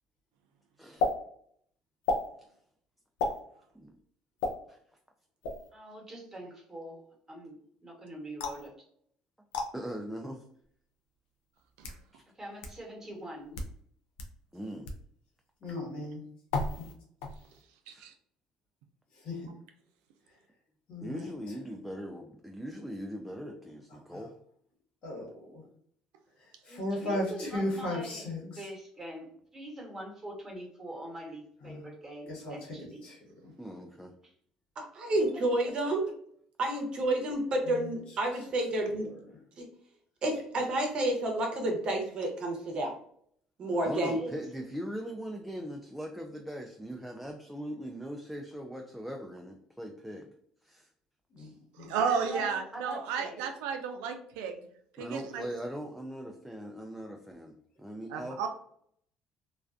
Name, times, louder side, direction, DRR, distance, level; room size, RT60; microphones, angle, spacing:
sound 1, 1.0-1.1 2.0-2.3 3.2-3.4 4.4-4.5 5.4-5.7 8.4-8.7 9.5-9.7 10.6-10.7 11.6-12.0 12.6-12.7 13.4-13.7 14.2-14.3 14.8-15.0 16.5-16.9 17.2-17.6, left 3 dB, 85° left, 0.4 m, -32 dB
voice 1, 5.7-8.7 12.3-13.6 26.7-33.1 34.2-34.3 43.8-44.5 52.1-53.4, right 1 dB, 20° right, -1 dB, 1.1 m, -43 dB
voice 2, 9.7-10.4 12.1-12.2 14.5-14.9 17.9-18.0 21.0-24.4 33.6-34.1 43.8-50.3 50.6-50.9 55.0-58.5, equal, ahead, 2 dB, 0.3 m, -40 dB
voice 3, 15.6-16.2 16.8-16.9 19.2-19.5 20.9-21.3 23.9-24.2 25.0-25.6 26.6-28.4 31.6-31.8 32.3-32.6 33.0-33.2 33.4-33.5 37.7-37.9 51.3-51.9, left 1 dB, 65° left, -2 dB, 1.1 m, -36 dB
voice 4, 34.8-36.0 36.6-39.1 39.6-39.7 40.2-42.9 43.6-44.2, right 1 dB, 50° right, 2 dB, 0.7 m, -30 dB
voice 5, 51.9-54.6 55.0-55.5 58.1-58.5, right 6 dB, 85° right, 5 dB, 0.3 m, -32 dB
2.4 x 2.2 x 2.4 m, 0.63 s
supercardioid pair, 80°, 2 cm